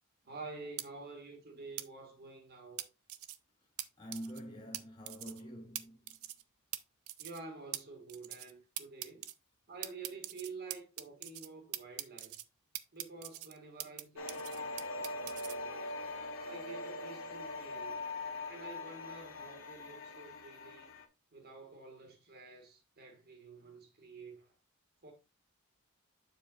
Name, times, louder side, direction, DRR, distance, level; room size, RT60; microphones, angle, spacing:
voice 1, 0.2-2.9 7.2-9.3 9.7-12.3 12.9-15.9 16.4-18.0 18.5-20.9 21.3-24.5 25.0-25.1, right 3 dB, 50° right, 1.7 m, -49 dB
sound 1, 0.8-0.9 1.8-1.9 2.8-3.4 3.8-3.9 4.1-4.4 4.7-4.8 5.1-5.4 5.8-5.9 6.1-6.4 6.7-6.8 7.1-7.4 7.7-7.8 8.1-8.5 8.8-9.3 9.8-11.5 11.7-12.4 12.8-14.0 14.3-15.6, right 14 dB, 80° right, 0.6 m, -42 dB
voice 2, 4.0-6.0, equal, 25° left, 2.5 m, -46 dB
sound 2, 14.2-21.0, left 2 dB, 65° left, 1.2 m, -42 dB
7.5 x 7.0 x 2.4 m
head